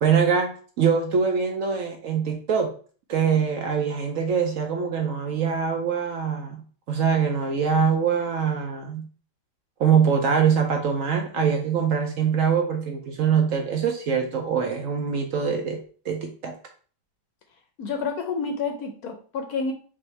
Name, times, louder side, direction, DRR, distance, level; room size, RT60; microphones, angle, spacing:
voice 1, 0.0-2.7 3.1-9.0 9.8-15.8 16.0-16.5, right 6 dB, 70° right, 3 dB, 0.8 m, -23 dB
voice 2, 17.8-19.7, left 4 dB, 70° left, 5 dB, 1.0 m, -29 dB
5.4 x 2.7 x 3.1 m, 0.42 s
omnidirectional pair, 2.0 m